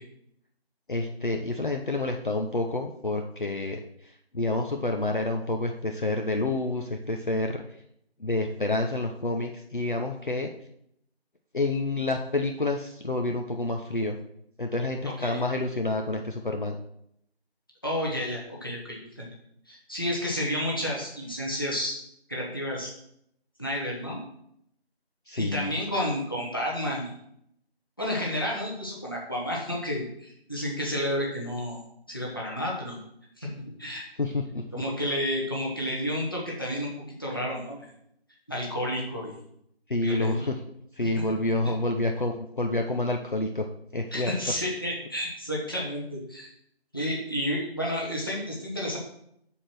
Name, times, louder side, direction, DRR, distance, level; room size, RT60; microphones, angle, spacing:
voice 1, 0.9-7.6 8.2-10.5 11.5-14.2 14.6-16.8 25.3-25.7 34.2-34.8 39.9-40.6 40.9-44.4, left 2 dB, 50° left, 3 dB, 0.7 m, -28 dB
voice 2, 17.8-19.3 19.7-22.0 22.3-22.9 23.6-24.2 25.4-27.1 28.0-31.8 32.1-33.0 33.4-33.5 33.8-34.0 34.7-36.9 37.2-37.9 38.5-39.3 40.0-40.3 41.0-41.1 44.1-46.5 46.9-49.0, equal, 20° left, -3 dB, 1.2 m, -31 dB
7.2 x 4.4 x 6.2 m, 0.73 s
figure-of-eight pair, 175°, 32 cm